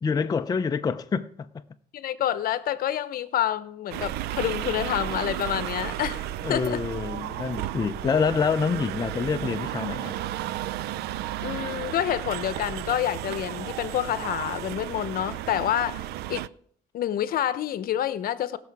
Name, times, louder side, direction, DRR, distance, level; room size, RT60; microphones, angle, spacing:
voice 1, 0.0-1.5 6.4-10.1, left 5 dB, 25° left, 0.5 m, -26 dB
voice 2, 1.9-6.2 6.5-6.8 11.4-16.4 16.9-18.6, left 11 dB, 60° left, 0.8 m, -28 dB
sound 1, 3.9-16.5, right 14 dB, 75° right, 0.4 m, -33 dB
sound 2, 8.0-13.2, right 1 dB, 50° right, 4.8 m, -50 dB
19.0 x 6.7 x 4.7 m
cardioid pair, 110°, 17 cm